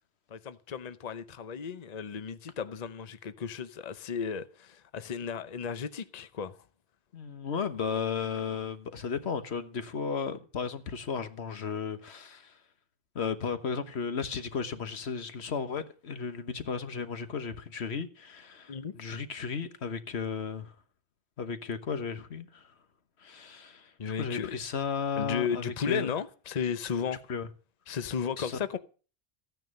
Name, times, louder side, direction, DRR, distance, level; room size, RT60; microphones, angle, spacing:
voice 1, 0.3-6.6 18.7-18.9 24.0-24.5 25.2-27.2 27.9-28.8, left 7 dB, 45° left, 0.9 m, -34 dB
voice 2, 7.1-12.5 13.1-20.7 21.4-22.7 23.2-23.9 24.2-26.1 27.3-27.5 28.4-28.5, left 6 dB, 90° left, 1.5 m, -34 dB
15.0 x 9.4 x 5.3 m
omnidirectional pair, 1.1 m